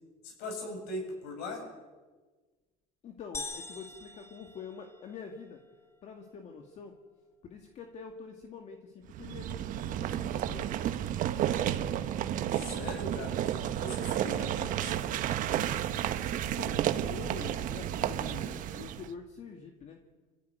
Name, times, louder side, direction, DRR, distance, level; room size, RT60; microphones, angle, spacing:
voice 1, 0.2-1.6 12.5-15.1, left 2 dB, 70° left, 4 dB, 7.9 m, -40 dB
voice 2, 3.0-5.7 6.0-7.0 7.4-11.0 16.4-20.0, left 6 dB, 45° left, 3 dB, 2.2 m, -46 dB
sound 1, 3.3-5.3, left 3 dB, 15° left, 2.0 m, -43 dB
sound 2, 9.1-19.1, right 11 dB, 55° right, 1.3 m, -32 dB
26.5 x 15.5 x 9.4 m, 1.3 s
cardioid pair, 130°, 17 cm